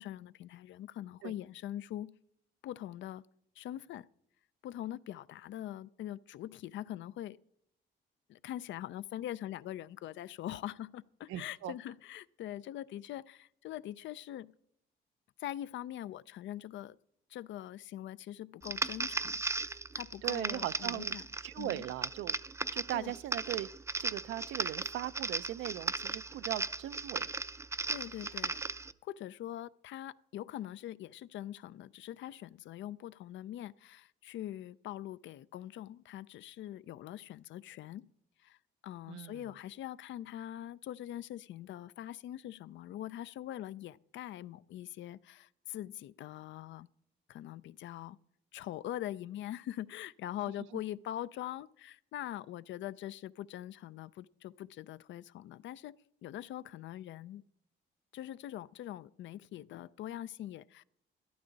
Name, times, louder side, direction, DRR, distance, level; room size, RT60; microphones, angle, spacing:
voice 1, 0.0-2.2 2.6-3.2 3.6-4.1 4.6-7.4 8.3-14.5 15.4-17.0 17.3-19.4 19.6-21.3 21.6-21.9 22.9-23.1 27.9-28.6 29.0-38.1 38.4-38.6 38.8-46.9 47.3-48.2 48.5-56.0 56.2-57.4 58.1-60.8, left 12 dB, 70° left, 0.4 m, -43 dB
voice 2, 11.3-11.7 20.2-21.2 21.4-22.4 22.7-23.7 24.0-27.3 39.1-39.5, right 14 dB, 85° right, 0.5 m, -39 dB
sound 1, 18.6-28.9, right 3 dB, 15° right, 0.4 m, -37 dB
13.0 x 11.5 x 4.0 m
cardioid pair, 90°, 20 cm